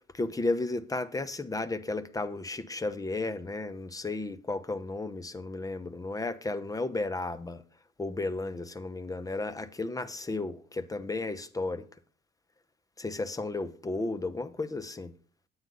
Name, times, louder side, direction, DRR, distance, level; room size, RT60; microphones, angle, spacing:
voice 1, 0.1-7.6 8.0-11.9 13.0-15.1, left 2 dB, 15° left, 0.8 m, -33 dB
9.6 x 8.8 x 4.0 m
cardioid pair, 90°, 20 cm